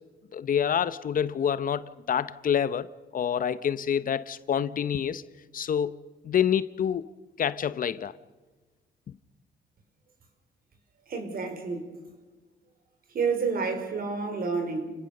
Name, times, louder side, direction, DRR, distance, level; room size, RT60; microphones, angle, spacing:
voice 1, 0.3-5.2 5.5-6.0 6.2-7.0 7.4-8.1, left 8 dB, 55° left, 15 dB, 0.9 m, -27 dB
voice 2, 11.1-11.9 13.1-14.9, right 5 dB, 60° right, 6 dB, 4.8 m, -29 dB
29.5 x 18.0 x 6.7 m, 1.3 s
cardioid pair, 80°, 17 cm